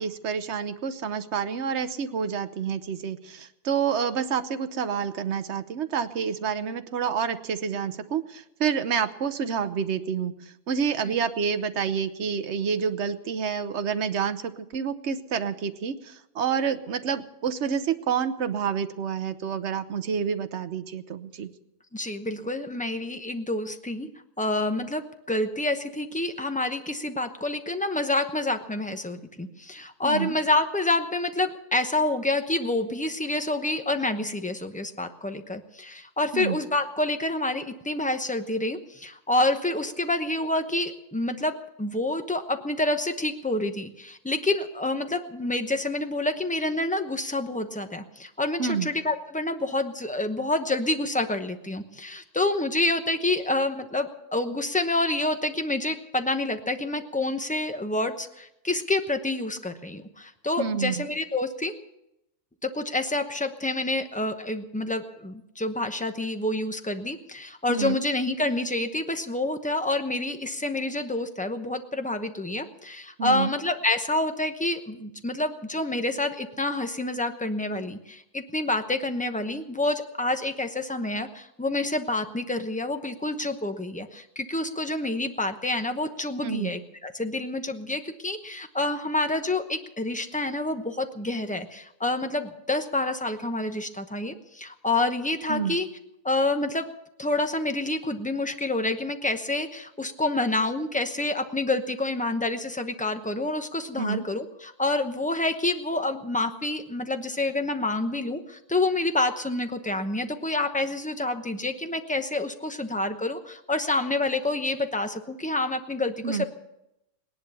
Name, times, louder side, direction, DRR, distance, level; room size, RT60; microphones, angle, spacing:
voice 1, 0.0-10.3 10.7-21.5 30.0-30.3 36.3-36.6 48.6-48.9 60.6-61.0 67.7-68.0 73.2-73.5 86.4-86.7 95.5-95.7 104.0-104.2 116.2-116.5, right 7 dB, 55° right, 10 dB, 1.0 m, -28 dB
voice 2, 21.9-24.1 24.4-61.7 62.6-95.9 96.2-96.9 97.2-116.5, left 2 dB, 5° left, 7 dB, 0.6 m, -28 dB
18.5 x 11.0 x 6.9 m, 0.85 s
omnidirectional pair, 1.7 m